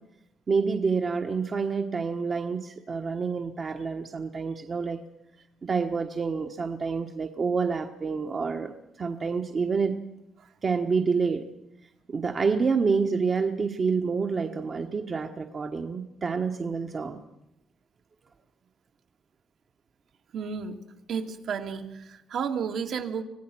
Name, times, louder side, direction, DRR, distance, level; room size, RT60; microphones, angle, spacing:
voice 1, 0.5-5.0 5.6-10.0 10.6-11.5 12.1-17.2, right 5 dB, 40° right, 4 dB, 1.4 m, -28 dB
voice 2, 20.3-20.8 21.1-23.2, right 6 dB, 70° right, 4 dB, 2.3 m, -32 dB
25.5 x 17.5 x 6.3 m, 0.89 s
cardioid pair, 90°, 0 cm